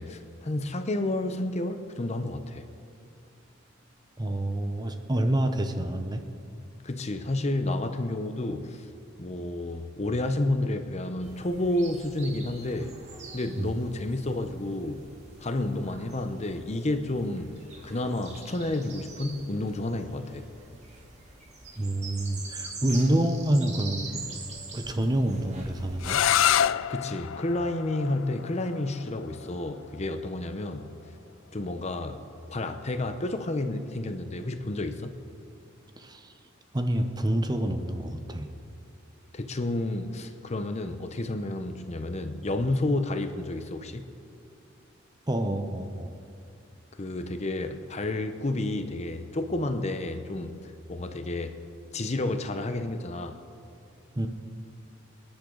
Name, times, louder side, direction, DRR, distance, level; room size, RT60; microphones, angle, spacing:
voice 1, 0.0-2.6 6.8-8.9 9.2-12.9 13.3-15.0 15.4-20.5 26.9-30.9 31.5-32.2 32.5-35.1 39.3-44.1 47.0-51.5 51.9-53.4, left 2 dB, 35° left, 8 dB, 0.8 m, -30 dB
voice 2, 4.2-6.2 13.6-13.7 21.8-24.2 24.7-26.2 36.0-36.3 36.7-38.5 45.3-46.1 54.2-54.3, right 1 dB, 20° right, 7 dB, 0.8 m, -27 dB
sound 1, 11.2-26.3, right 3 dB, 35° right, 2.0 m, -44 dB
sound 2, 26.0-31.7, left 10 dB, 75° left, 0.3 m, -29 dB
26.0 x 10.5 x 3.9 m, 2.5 s
head